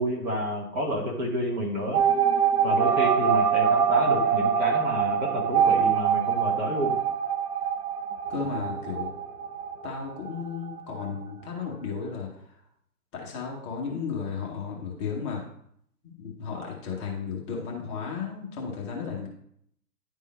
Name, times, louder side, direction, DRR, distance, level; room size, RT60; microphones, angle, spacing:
voice 1, 0.0-2.0 2.6-7.0, equal, 30° right, 0 dB, 1.3 m, -29 dB
sound 1, 1.9-10.4 10.7-10.8 11.0-11.1, right 7 dB, 70° right, 1.2 m, -24 dB
voice 2, 8.3-9.1 9.8-12.3 13.1-15.4 16.0-19.3, left 6 dB, 20° left, -1 dB, 0.8 m, -34 dB
10.5 x 3.7 x 4.2 m, 0.69 s
hypercardioid pair, 145°, 47 cm